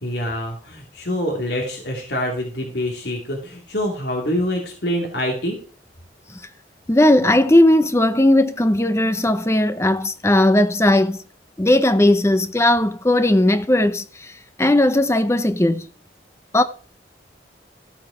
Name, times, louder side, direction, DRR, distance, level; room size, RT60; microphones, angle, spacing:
voice 1, 0.0-5.6, equal, 75° left, 2.6 m, -25 dB
voice 2, 6.9-11.2 11.6-14.0 14.6-15.9 16.5-16.6, left 1 dB, 15° left, 0.7 m, -17 dB
14.0 x 8.7 x 5.0 m
head